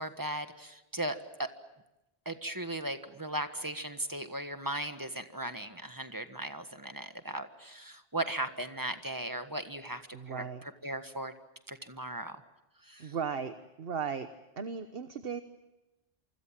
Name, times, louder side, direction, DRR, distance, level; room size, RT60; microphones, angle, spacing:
voice 1, 0.0-1.5 2.2-10.0 10.3-11.3 11.7-12.4 12.8-13.1, right 1 dB, 20° right, 8 dB, 1.6 m, -37 dB
voice 2, 10.1-10.6 13.0-14.3 14.6-15.4, right 6 dB, 70° right, 9 dB, 1.3 m, -36 dB
27.5 x 25.0 x 7.5 m, 0.97 s
omnidirectional pair, 1.0 m